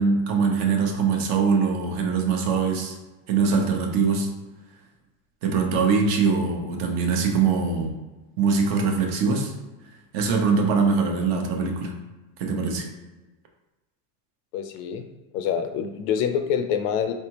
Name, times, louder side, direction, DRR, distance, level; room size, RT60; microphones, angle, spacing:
voice 1, 0.0-3.0 3.3-4.3 5.4-7.9 8.4-9.5 10.1-11.9 12.4-12.9, right 5 dB, 50° right, 2 dB, 0.9 m, -22 dB
voice 2, 14.5-15.1 15.3-17.1, left 8 dB, 60° left, 7 dB, 0.5 m, -26 dB
4.6 x 3.3 x 2.9 m, 1.1 s
cardioid pair, 175°, 49 cm